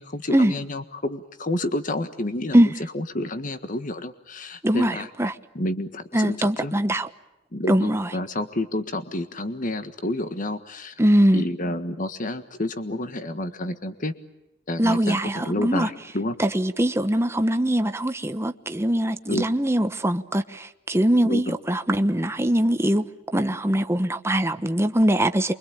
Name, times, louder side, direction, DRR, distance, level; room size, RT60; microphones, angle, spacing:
voice 1, 0.0-2.6 2.9-5.1 5.5-6.4 6.6-6.7 7.5-10.9 11.3-14.1 14.7-16.4 19.3-19.4 21.2-21.5, left 1 dB, 45° left, 1.6 m, -29 dB
voice 2, 4.6-5.3 6.1-7.1 7.7-8.1 11.0-11.4 14.8-15.9 16.4-23.0 23.3-25.5, right 1 dB, 15° right, 1.1 m, -22 dB
28.5 x 24.0 x 8.7 m
head